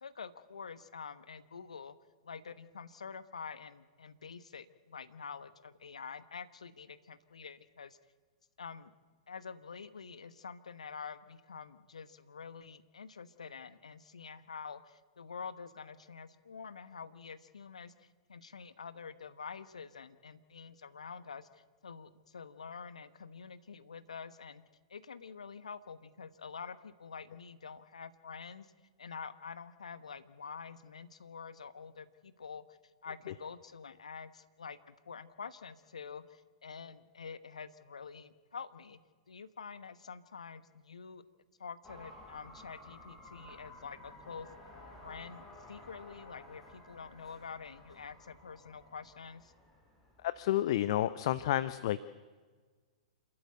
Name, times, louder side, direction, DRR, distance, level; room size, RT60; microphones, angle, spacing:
voice 1, 0.0-1.9 2.2-8.0 8.6-8.9 9.3-24.6 24.9-28.7 29.0-39.0 39.3-41.2 41.6-44.5 45.0-49.5, left 6 dB, 75° left, 13 dB, 1.2 m, -47 dB
sound 1, 41.8-50.5, left 1 dB, 5° left, 5.7 m, -54 dB
voice 2, 50.2-52.0, left 13 dB, 50° left, 15 dB, 0.7 m, -30 dB
28.0 x 13.0 x 8.1 m, 1.4 s
figure-of-eight pair, 105°, 4 cm